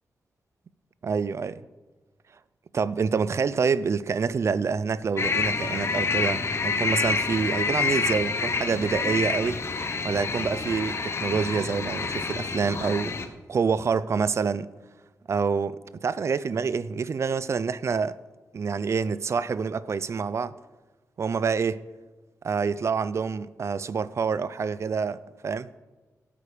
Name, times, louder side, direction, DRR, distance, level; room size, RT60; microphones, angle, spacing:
voice 1, 1.0-1.6 2.7-9.6 10.0-14.7 15.3-18.2 18.5-20.5 21.2-21.8 22.4-25.7, right 5 dB, 50° right, 0.5 m, -27 dB
sound 1, 5.2-13.3, left 4 dB, 45° left, 1.1 m, -28 dB
16.0 x 8.6 x 5.1 m
wide cardioid pair, 95°, 6 cm